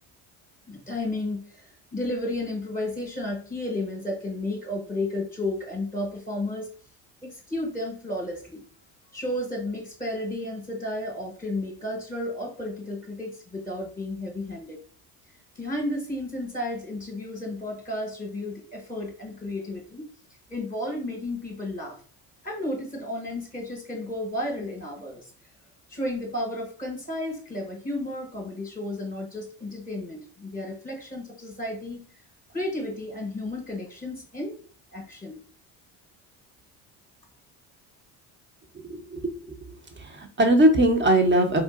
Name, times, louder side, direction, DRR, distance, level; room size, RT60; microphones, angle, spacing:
voice 1, 0.7-6.7 7.2-8.6 9.1-14.8 15.5-20.1 20.5-22.0 22.4-25.2 25.9-32.0 32.5-34.6 34.9-35.4, left 1 dB, 20° left, 2 dB, 1.0 m, -32 dB
voice 2, 38.9-39.6 40.0-41.6, right 1 dB, 25° right, 4 dB, 0.8 m, -21 dB
3.8 x 2.4 x 2.4 m, 0.41 s
supercardioid pair, 75°, 46 cm